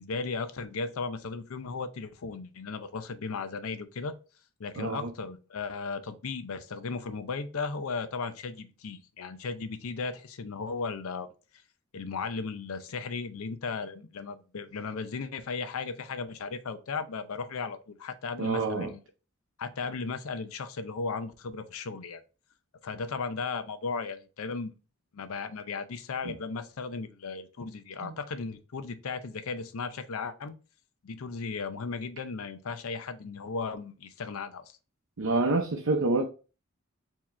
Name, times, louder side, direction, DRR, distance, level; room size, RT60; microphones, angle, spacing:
voice 1, 0.0-4.1 4.6-11.3 11.9-19.0 19.6-22.2 22.8-24.7 25.1-30.6 31.0-34.7, left 4 dB, 85° left, 0.6 m, -36 dB
voice 2, 4.8-5.1 18.4-18.9 26.2-26.3 28.0-28.1 35.2-36.2, right 3 dB, 75° right, 0.6 m, -27 dB
4.6 x 2.9 x 3.2 m
head